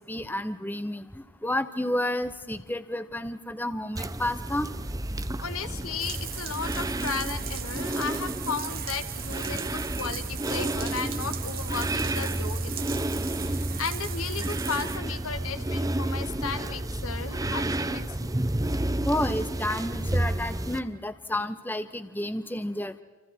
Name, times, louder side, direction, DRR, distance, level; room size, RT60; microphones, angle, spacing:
voice 1, 0.1-1.1 1.4-4.7 19.0-22.9, left 1 dB, 10° left, 11 dB, 1.0 m, -30 dB
sound 1, 3.9-20.8, right 1 dB, 15° right, 0.8 m, -31 dB
voice 2, 5.4-13.0 13.4-18.3, left 5 dB, 90° left, 8 dB, 2.0 m, -35 dB
sound 2, 6.0-15.0, right 10 dB, 45° right, 1.6 m, -39 dB
29.5 x 28.0 x 4.6 m, 1.2 s
head